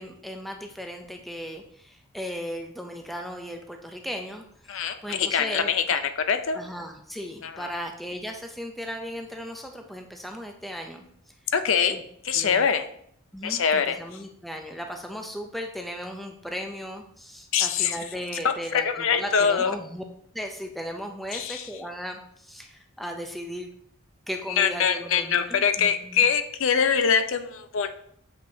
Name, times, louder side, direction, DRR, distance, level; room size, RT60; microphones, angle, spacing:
voice 1, 0.0-6.0 6.5-11.1 11.9-12.0 12.3-12.6 13.3-20.0 20.3-23.7 24.3-26.2, equal, ahead, 3 dB, 0.5 m, -36 dB
voice 2, 4.7-6.6 7.4-7.7 11.5-12.0 12.2-12.8 13.4-14.0 17.5-18.0 18.7-19.7 21.3-21.7 24.6-27.9, left 7 dB, 65° left, 9 dB, 0.5 m, -24 dB
7.6 x 5.2 x 2.7 m, 0.67 s
head